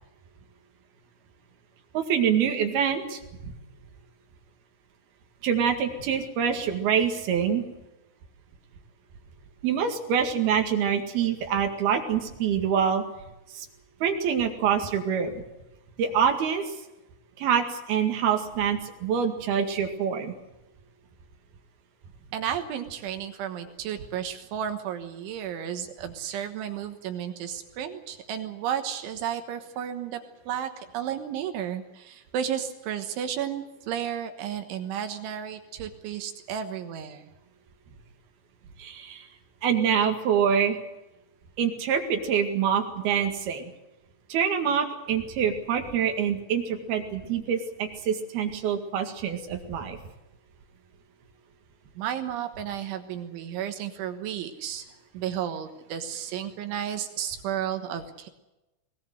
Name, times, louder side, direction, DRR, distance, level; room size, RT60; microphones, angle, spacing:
voice 1, 1.9-3.5 5.4-7.6 9.6-13.0 13.5-13.7 14.0-15.4 16.0-16.8 17.4-20.3 38.8-39.3 39.6-40.8 41.6-43.7 44.3-50.0, right 7 dB, 55° right, 4 dB, 3.5 m, -25 dB
voice 2, 22.3-37.3 52.0-54.9 55.1-58.3, right 9 dB, 75° right, 7 dB, 3.5 m, -33 dB
22.0 x 19.5 x 7.8 m, 0.98 s
omnidirectional pair, 5.9 m